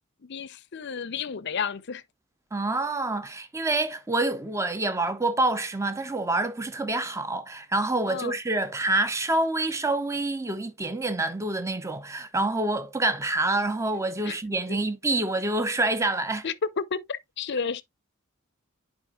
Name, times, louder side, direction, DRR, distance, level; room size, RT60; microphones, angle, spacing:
voice 1, 0.2-2.0 8.1-8.3 14.2-14.3 14.7-14.8 16.4-17.8, left 6 dB, 55° left, 0.5 m, -31 dB
voice 2, 2.5-16.5, right 2 dB, 15° right, 0.7 m, -27 dB
10.5 x 4.9 x 2.3 m
head